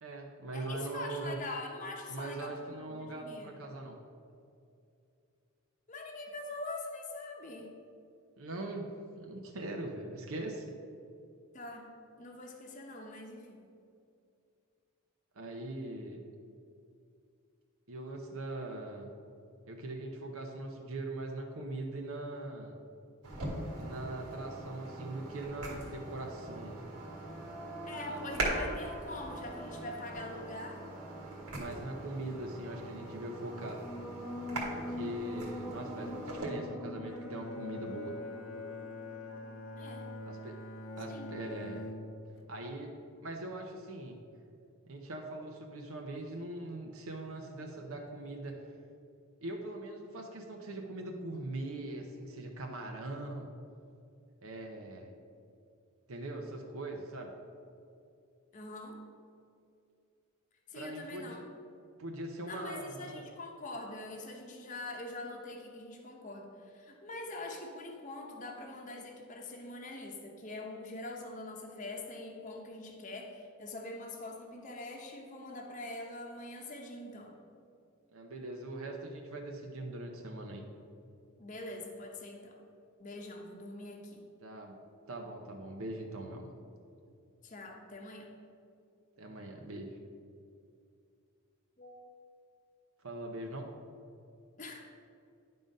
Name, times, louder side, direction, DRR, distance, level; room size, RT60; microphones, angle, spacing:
voice 1, 0.0-1.4 2.1-4.0 8.4-8.9 9.2-10.7 15.3-16.2 17.9-19.1 19.7-22.8 23.8-26.7 28.1-28.2 31.5-33.8 34.7-38.1 40.2-40.6 41.0-41.9 42.5-42.9 43.2-44.2 44.9-48.5 49.4-53.5 54.4-55.1 56.1-57.3 60.7-61.4 62.0-63.2 78.1-80.6 84.4-84.8 85.1-86.5 89.2-90.0 93.0-93.7, right 2 dB, 75° right, 1 dB, 0.7 m, -41 dB
voice 2, 0.5-3.5 5.9-7.8 11.5-11.9 12.2-13.7 27.8-30.9 39.8-40.1 41.1-41.3 58.5-59.0 60.7-61.4 62.5-77.3 81.4-82.6 83.0-84.2 87.4-88.3 91.8-92.1 94.6-94.8, left 2 dB, 35° left, 0 dB, 0.8 m, -44 dB
sound 1, 23.2-36.5, right 2 dB, 90° right, 1.8 m, -41 dB
sound 2, 26.4-40.1, left 1 dB, ahead, 0.6 m, -45 dB
Bowed string instrument, 37.0-42.5, left 2 dB, 65° left, 0.7 m, -44 dB
10.5 x 3.9 x 5.2 m, 2.5 s
head